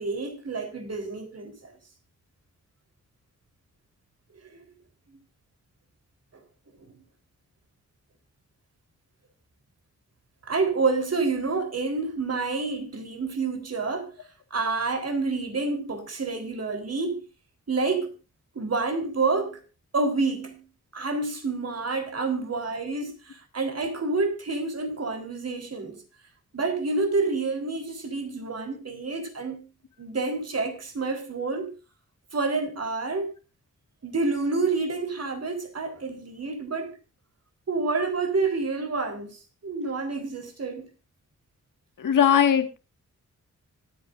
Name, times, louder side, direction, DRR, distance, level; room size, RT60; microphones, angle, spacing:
voice 1, 0.0-1.7 4.3-4.6 10.5-14.1 14.5-17.2 17.7-18.1 18.5-19.6 19.9-20.6 20.9-26.0 26.5-29.7 30.0-31.7 32.3-33.3 34.0-36.9 37.7-40.9, right 3 dB, 50° right, 3.9 m, -28 dB
voice 2, 42.0-42.8, left 9 dB, 80° left, 1.9 m, -20 dB
25.5 x 9.4 x 2.6 m
cardioid pair, 80°, 31 cm